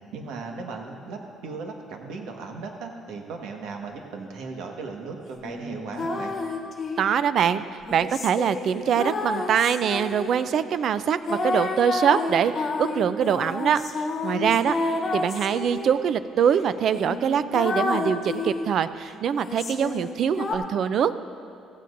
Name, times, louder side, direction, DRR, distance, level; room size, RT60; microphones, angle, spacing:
voice 1, 0.1-6.3 14.3-14.6, right 4 dB, 80° right, 2 dB, 1.5 m, -37 dB
sound 1, 5.4-7.2 7.9-10.4 11.3-15.9 16.5-16.6 16.9-18.7 19.3-20.6, left 3 dB, 35° left, 1.2 m, -30 dB
voice 2, 7.0-7.6 7.9-13.8 14.2-14.8 15.1-21.1, right 8 dB, 50° right, 13 dB, 0.4 m, -23 dB
16.0 x 15.0 x 2.6 m, 2.5 s
cardioid pair, 155°, 0 cm